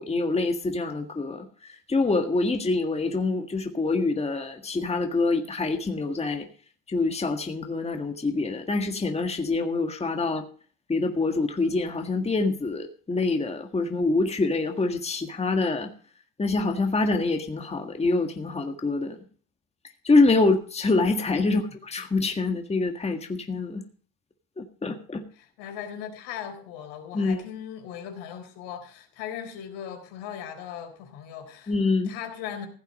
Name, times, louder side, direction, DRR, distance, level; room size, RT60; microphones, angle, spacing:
voice 1, 0.0-1.5 1.9-6.5 6.9-10.4 10.9-15.9 16.4-19.2 20.0-23.8 24.6-25.2 27.1-27.4 31.7-32.1, left 3 dB, 15° left, 1.7 m, -25 dB
voice 2, 25.3-31.8 32.0-32.7, left 9 dB, 75° left, 4.0 m, -38 dB
16.0 x 8.1 x 5.2 m
supercardioid pair, 95°, 39 cm